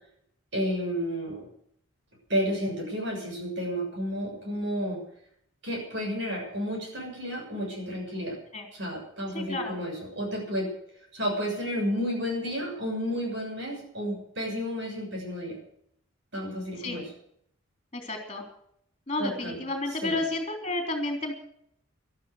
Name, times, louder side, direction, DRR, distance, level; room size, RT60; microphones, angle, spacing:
voice 1, 0.5-1.5 2.3-5.0 5.6-8.4 8.7-10.7 11.1-15.6 16.3-17.0 19.2-19.6 20.0-20.2, equal, 55° right, 0 dB, 7.1 m, -31 dB
voice 2, 9.3-9.8 16.8-17.0 17.9-18.5 19.1-21.3, left 2 dB, 30° left, 3 dB, 3.6 m, -31 dB
12.5 x 12.5 x 8.1 m, 0.69 s
head